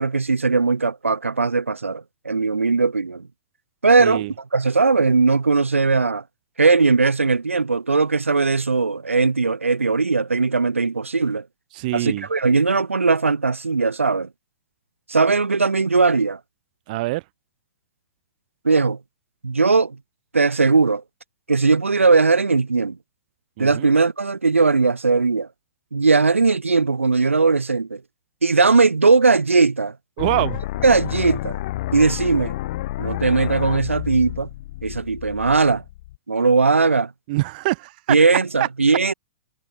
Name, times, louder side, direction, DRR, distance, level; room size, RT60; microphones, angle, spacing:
voice 1, 0.0-3.2 3.8-4.2 4.5-6.2 6.6-11.4 11.9-14.3 15.1-16.4 18.6-19.0 19.4-20.0 20.3-21.0 21.5-23.0 23.6-25.5 25.9-28.0 28.4-29.9 30.4-30.5 30.8-31.6 31.9-32.5 33.0-34.5 34.8-35.8 36.3-37.1 38.1-39.1, right 4 dB, 75° right, 2.6 m, -19 dB
voice 2, 4.0-4.3 11.7-12.3 16.9-17.2 23.6-23.9 30.2-30.6 37.3-38.2, right 20 dB, 40° right, 2.2 m, -24 dB
sound 1, 30.2-36.2, left 16 dB, 45° left, 1.8 m, -30 dB
figure-of-eight pair, 110°, 7 cm